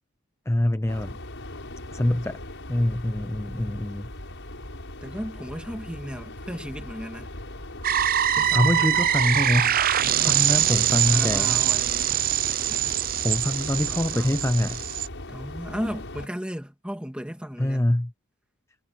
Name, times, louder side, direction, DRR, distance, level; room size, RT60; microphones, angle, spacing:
voice 1, 0.5-1.2 1.9-2.4 2.7-4.1 8.5-9.8 10.2-11.6 12.5-12.6 13.2-14.9 17.6-18.1, left 1 dB, 10° left, 0.5 m, -25 dB
sound 1, 0.9-16.3, left 1 dB, 55° left, 7.7 m, -39 dB
voice 2, 5.0-7.3 8.4-8.9 10.0-12.2 12.7-13.0 13.9-14.4 15.3-17.9, equal, 5° right, 2.2 m, -36 dB
sound 2, 7.8-15.1, right 11 dB, 40° right, 0.6 m, -23 dB
head